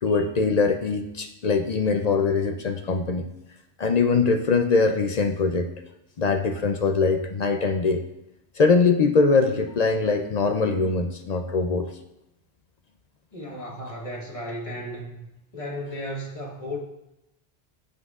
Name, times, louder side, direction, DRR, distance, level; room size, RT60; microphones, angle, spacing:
voice 1, 0.0-3.2 3.8-5.7 6.2-8.0 8.6-11.9, left 4 dB, 50° left, 6 dB, 0.5 m, -22 dB
voice 2, 13.3-15.2 15.5-16.8, equal, 30° left, -1 dB, 1.3 m, -34 dB
9.3 x 7.5 x 2.4 m, 0.89 s
omnidirectional pair, 1.1 m